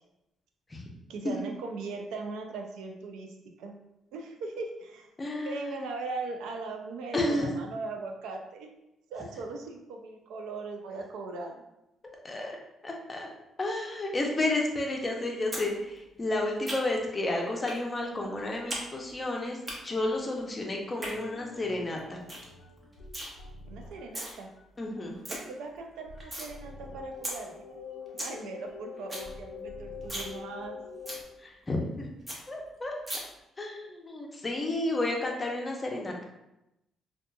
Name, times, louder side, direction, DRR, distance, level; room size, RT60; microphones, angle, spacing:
voice 1, 1.1-3.7 4.1-5.1 5.4-8.7 9.1-11.5 23.6-24.5 25.3-27.6 28.1-30.8, right 3 dB, 90° right, 3 dB, 0.3 m, -39 dB
voice 2, 5.2-5.7 7.1-7.5 12.0-12.6 12.8-13.3 13.6-19.6 19.8-22.2 24.8-25.2 31.4-32.1 32.5-32.9 33.6-36.2, left 2 dB, 25° left, 0 dB, 0.5 m, -31 dB
sound 1, 15.5-15.7 16.0-17.1 17.7-17.8 18.1-18.8 19.1-19.7 20.8-21.1 21.6-21.7 22.0-22.1 22.3-22.5 22.8-23.3 23.9-24.3 24.7-24.8 25.0-25.4 25.8-26.5 26.9-27.0 27.2-27.3 27.7-27.8 28.0-28.3 28.7-28.8 29.0-29.3 29.6-29.7 30.0-30.3 30.6-30.7 31.1-31.2 31.6-31.7 31.9-32.0 32.3-32.4 33.1-33.2, right 1 dB, 25° right, 0.7 m, -37 dB
sound 2, 21.1-24.3 24.6-25.1 25.3-31.2, left 4 dB, 85° left, 0.4 m, -45 dB
2.7 x 2.3 x 2.2 m, 0.90 s
cardioid pair, 90°, 0 cm